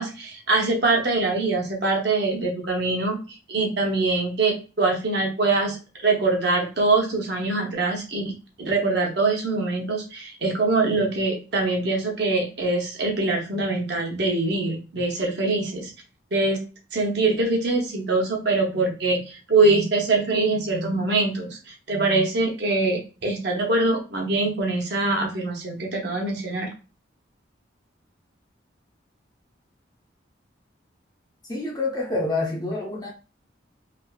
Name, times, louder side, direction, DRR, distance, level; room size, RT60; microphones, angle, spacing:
voice 1, 0.0-3.2 3.5-8.3 8.6-15.9 16.3-16.6 16.9-26.7, right 3 dB, 60° right, 0.8 m, -23 dB
voice 2, 31.5-33.1, left 2 dB, 20° left, 0.7 m, -27 dB
3.3 x 2.4 x 2.3 m
head